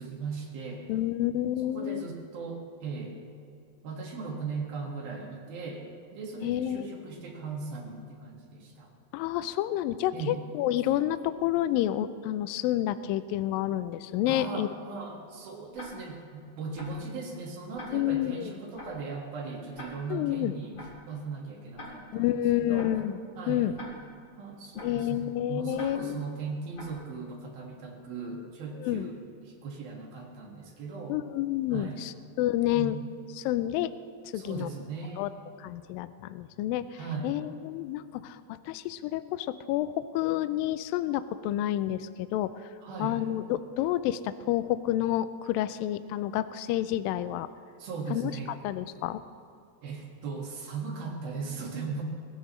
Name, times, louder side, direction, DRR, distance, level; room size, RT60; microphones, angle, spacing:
voice 1, 0.0-0.9 1.6-3.2 3.8-8.9 10.1-10.4 14.3-22.9 23.4-23.7 24.4-31.2 31.7-32.0 32.7-33.0 34.3-35.3 36.9-37.4 42.8-43.2 47.8-48.5 49.8-52.0, right 4 dB, 65° right, 0 dB, 3.6 m, -38 dB
voice 2, 0.9-2.1 6.4-7.0 9.1-14.7 17.9-18.5 20.1-20.6 22.1-23.1 23.5-23.7 24.8-26.2 28.8-29.1 31.1-33.0 33.4-33.9 34.3-34.7 35.2-35.3 35.6-42.6 43.0-47.5 48.1-48.3 48.6-49.2, left 13 dB, 85° left, 12 dB, 2.0 m, -29 dB
Tick-tock, 15.7-15.9 16.7-16.9 17.7-17.9 18.7-18.9 19.7-19.9 20.7-20.9 21.7-21.9 22.7-22.9 23.7-23.9 24.7-24.9 25.7-25.9 26.7-26.9, left 2 dB, 30° left, 2.6 m, -43 dB
22.0 x 17.0 x 3.2 m, 2.4 s
omnidirectional pair, 4.6 m